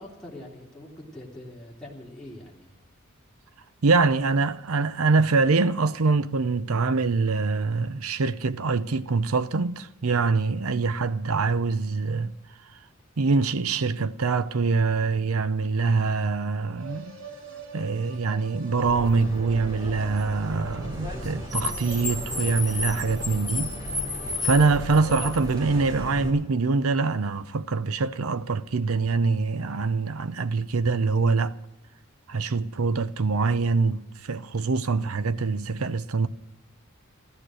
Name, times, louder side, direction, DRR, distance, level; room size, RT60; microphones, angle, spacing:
voice 1, 0.0-2.7, left 1 dB, 5° left, 3.1 m, -43 dB
voice 2, 3.8-12.3 13.2-17.2 17.7-23.7 24.4-31.5 32.3-36.3, right 4 dB, 85° right, 0.7 m, -24 dB
sound 1, 16.7-25.9, right 5 dB, 65° right, 2.7 m, -47 dB
Car, 18.8-26.3, left 2 dB, 20° right, 2.7 m, -33 dB
15.0 x 12.5 x 6.3 m
head